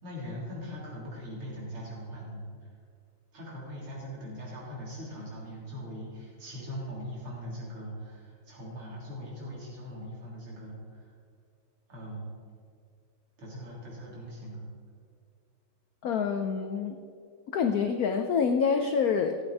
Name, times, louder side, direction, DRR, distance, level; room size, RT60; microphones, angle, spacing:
voice 1, 0.0-2.4 3.3-11.1 11.9-12.3 13.4-14.6, equal, 80° right, -5 dB, 4.1 m, -41 dB
voice 2, 16.0-17.0 17.5-19.4, left 6 dB, 90° left, 6 dB, 0.8 m, -26 dB
15.0 x 8.1 x 4.7 m, 2.2 s
omnidirectional pair, 2.3 m